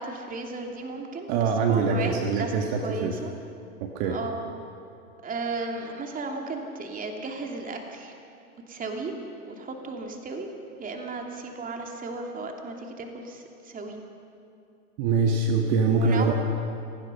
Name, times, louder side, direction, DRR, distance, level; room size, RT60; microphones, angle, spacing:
voice 1, 0.0-2.5 2.8-3.3 4.0-4.4 5.2-8.1 8.7-9.1 9.4-10.5 10.8-14.0 15.9-16.3, right 3 dB, 20° right, 2 dB, 2.9 m, -35 dB
voice 2, 1.3-3.1 3.8-4.2 15.0-16.3, right 4 dB, 45° right, 2 dB, 2.0 m, -24 dB
29.0 x 17.0 x 5.6 m, 2.6 s
hypercardioid pair, 105°, 43 cm